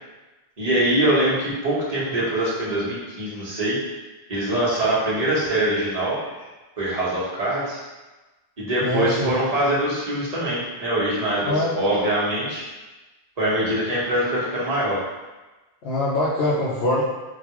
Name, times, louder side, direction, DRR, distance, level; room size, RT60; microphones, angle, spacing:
voice 1, 0.6-3.8 4.3-6.2 6.8-7.8 8.6-12.6 13.4-15.0, right 1 dB, 40° right, -7 dB, 1.1 m, -23 dB
voice 2, 8.8-9.3 11.5-11.7 15.8-17.0, left 2 dB, 85° left, -7 dB, 0.9 m, -23 dB
4.0 x 2.3 x 2.9 m, 1.1 s
omnidirectional pair, 1.0 m